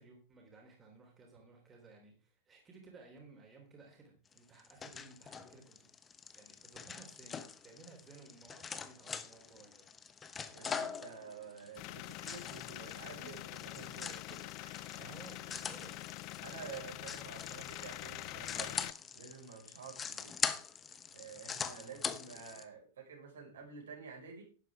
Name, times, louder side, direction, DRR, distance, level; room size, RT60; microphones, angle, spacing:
voice 1, 0.0-5.9 6.3-9.9 14.9-16.1 21.7-22.0, right 3 dB, 20° right, 1 dB, 3.6 m, -57 dB
sound 1, 4.3-22.6, left 6 dB, 20° left, 1.0 m, -43 dB
voice 2, 10.5-15.3 16.4-18.7 19.1-20.4 21.1-24.4, right 5 dB, 65° right, 0 dB, 5.5 m, -50 dB
sound 2, 11.8-18.9, left 19 dB, 40° left, 0.5 m, -45 dB
12.0 x 11.0 x 3.6 m, 0.37 s
figure-of-eight pair, 90°, 0 cm